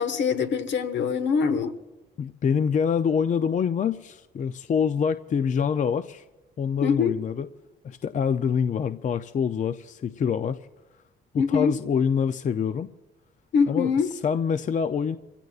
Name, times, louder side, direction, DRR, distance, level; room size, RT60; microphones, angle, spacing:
voice 1, 0.0-1.8 6.8-7.1 11.4-11.8 13.5-14.1, left 6 dB, 65° left, 10 dB, 1.1 m, -23 dB
voice 2, 2.2-6.2 6.6-7.5 7.8-10.6 11.3-12.9 13.7-15.2, left 7 dB, 40° left, 11 dB, 0.4 m, -25 dB
27.5 x 16.0 x 2.4 m, 1.1 s
cardioid pair, 90°, 20 cm